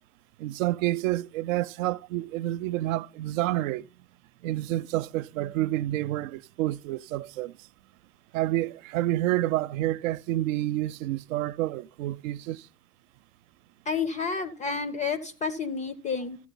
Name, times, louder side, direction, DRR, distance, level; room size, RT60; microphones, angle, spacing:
voice 1, 0.4-3.9 4.4-7.5 8.3-12.7, right 15 dB, 60° right, 0.5 m, -29 dB
voice 2, 13.9-16.4, left 5 dB, 15° left, 0.4 m, -30 dB
13.5 x 8.1 x 3.9 m
hypercardioid pair, 115°, 46 cm